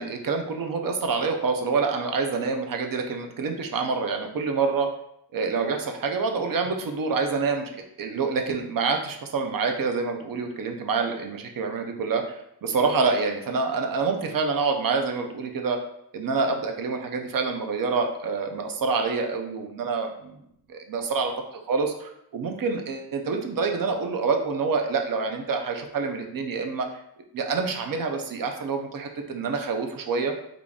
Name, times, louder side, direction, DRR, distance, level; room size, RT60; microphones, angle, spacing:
voice 1, 0.0-4.9 5.3-12.2 12.6-15.8 16.1-20.3 20.7-21.3 21.7-26.9 27.3-30.3, right 4 dB, 60° right, 4 dB, 0.6 m, -27 dB
3.7 x 2.3 x 3.6 m, 0.75 s
wide cardioid pair, 145°, 39 cm